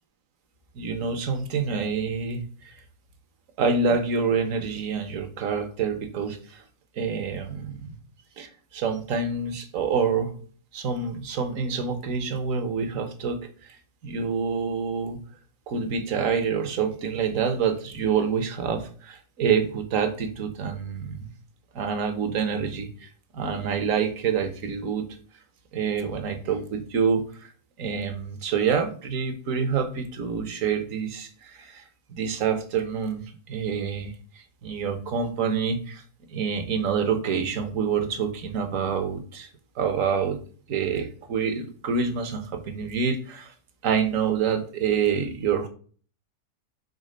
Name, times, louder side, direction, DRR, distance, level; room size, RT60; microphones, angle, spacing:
voice 1, 0.7-2.8 3.6-6.6 7.0-8.0 8.4-10.3 10.7-13.8 14.0-15.2 15.7-21.3 21.7-25.1 25.7-27.5 27.8-31.8 32.1-34.1 34.6-36.0 36.3-39.5 39.8-40.4 40.7-43.5 43.8-45.7, right 6 dB, 65° right, 7 dB, 1.3 m, -27 dB
5.5 x 3.6 x 5.1 m, 0.43 s
omnidirectional pair, 1.5 m